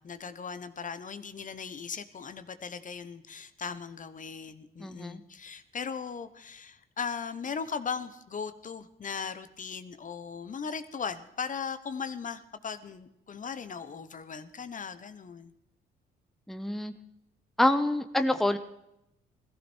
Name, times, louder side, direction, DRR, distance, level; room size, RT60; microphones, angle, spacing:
voice 1, 0.0-15.5, left 6 dB, 40° left, 11 dB, 1.1 m, -38 dB
voice 2, 4.8-5.2 16.5-16.9 17.6-18.6, left 1 dB, ahead, 9 dB, 0.8 m, -26 dB
18.0 x 15.0 x 4.5 m, 0.83 s
cardioid pair, 90°, 20 cm